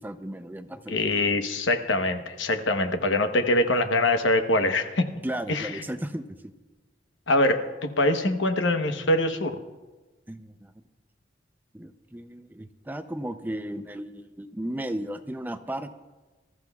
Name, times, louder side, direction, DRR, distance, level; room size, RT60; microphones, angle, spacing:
voice 1, 0.0-1.0 5.2-6.5 10.3-10.7 11.7-16.0, right 1 dB, 10° right, 9 dB, 0.5 m, -35 dB
voice 2, 0.9-5.0 5.5-5.7 7.3-9.6, left 1 dB, 75° left, 7 dB, 1.0 m, -24 dB
25.5 x 14.0 x 2.3 m, 1.2 s
head